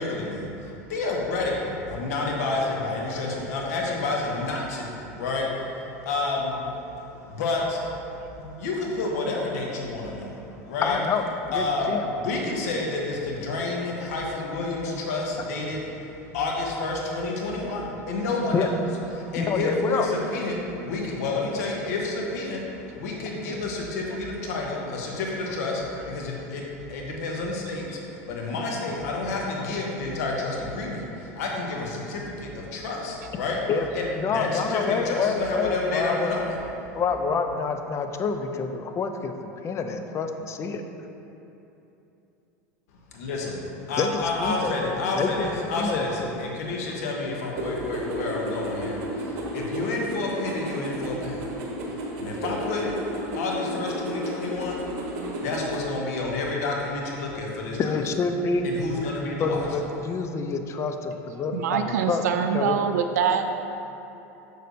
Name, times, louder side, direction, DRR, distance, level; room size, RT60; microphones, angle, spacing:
voice 1, 0.0-6.7 7.2-11.0 11.5-18.7 19.1-33.6 33.9-36.6 43.1-54.9 55.2-57.9 58.6-59.7, left 3 dB, 80° left, -1 dB, 1.1 m, -30 dB
voice 2, 10.8-12.0 18.5-18.7 19.4-20.1 33.7-33.9 34.2-36.3 36.9-40.8 44.0-46.1 57.8-58.7 59.4-62.2 62.5-62.8, left 5 dB, 35° left, 6 dB, 0.5 m, -27 dB
sound 1, 47.6-55.9, right 1 dB, 60° right, 1.1 m, -32 dB
voice 3, 61.5-63.5, right 7 dB, 85° right, 7 dB, 0.4 m, -25 dB
6.5 x 6.4 x 2.7 m, 2.9 s
hypercardioid pair, 100°, 8 cm